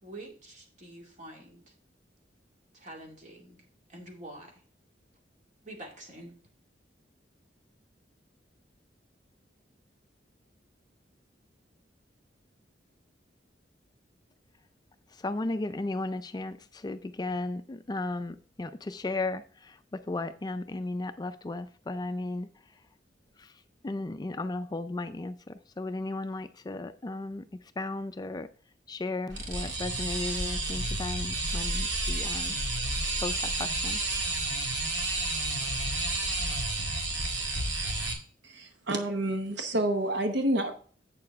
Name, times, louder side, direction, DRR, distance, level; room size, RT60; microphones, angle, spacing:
voice 1, 0.0-1.7 2.7-3.6 3.9-4.6 5.6-6.4, right 1 dB, 45° right, 1 dB, 2.3 m, -46 dB
voice 2, 15.2-22.5 23.4-23.5 23.8-27.4 27.8-28.5 28.9-32.6 33.2-34.0, left 2 dB, 25° left, 10 dB, 0.4 m, -35 dB
sound 1, 29.3-38.1, right 2 dB, 90° right, 2.0 m, -31 dB
voice 3, 38.4-40.7, right 1 dB, 70° right, 6 dB, 0.9 m, -29 dB
8.4 x 6.8 x 3.5 m, 0.43 s
head